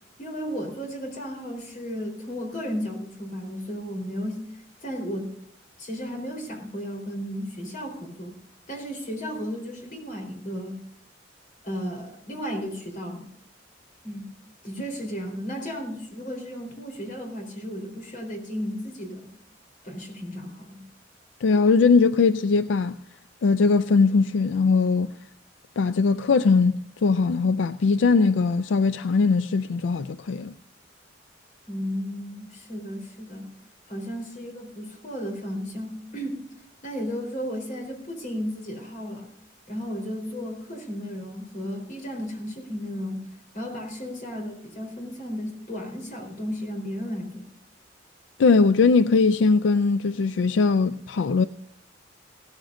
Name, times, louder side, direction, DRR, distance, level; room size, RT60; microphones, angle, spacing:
voice 1, 0.2-4.4 4.8-5.3 5.8-8.4 8.7-10.9 11.6-13.3 14.0-14.3 14.6-19.3 19.8-20.9 31.7-33.5 33.9-36.4 36.8-39.3 39.7-43.3 43.5-47.5, equal, 45° left, 4.0 m, -34 dB
voice 2, 21.4-23.0 23.4-25.1 25.8-30.5 48.4-51.4, left 4 dB, 80° left, 0.4 m, -20 dB
16.5 x 14.0 x 2.6 m
head